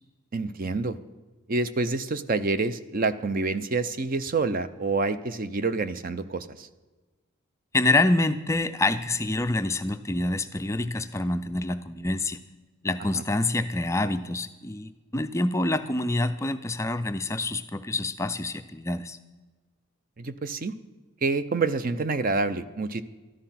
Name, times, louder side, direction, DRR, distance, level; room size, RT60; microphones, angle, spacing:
voice 1, 0.3-1.0 1.5-6.7 13.1-13.2 20.2-20.7 21.2-23.0, right 3 dB, 40° right, 12 dB, 0.6 m, -27 dB
voice 2, 7.7-12.4 12.8-19.2, left 2 dB, 15° left, 9 dB, 0.4 m, -26 dB
13.5 x 11.5 x 5.7 m, 1.3 s
head